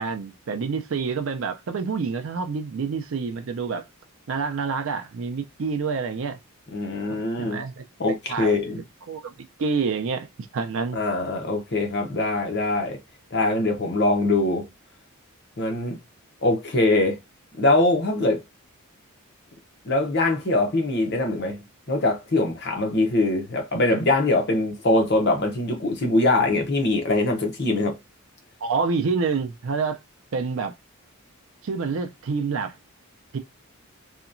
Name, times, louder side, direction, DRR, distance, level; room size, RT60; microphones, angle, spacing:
voice 1, 0.0-3.9 4.3-6.4 7.1-7.8 8.3-8.6 9.1-9.3 9.6-10.3 10.5-11.0 28.6-30.0 30.3-30.7 31.6-32.8 33.3-33.4, right 5 dB, 60° right, 0.4 m, -27 dB
voice 2, 6.7-7.6 8.0-8.8 11.0-13.0 13.3-14.7 15.6-16.0 16.4-17.2 17.6-18.4 19.8-21.6 21.9-28.0, left 2 dB, 50° left, 0.8 m, -22 dB
2.8 x 2.2 x 2.5 m
head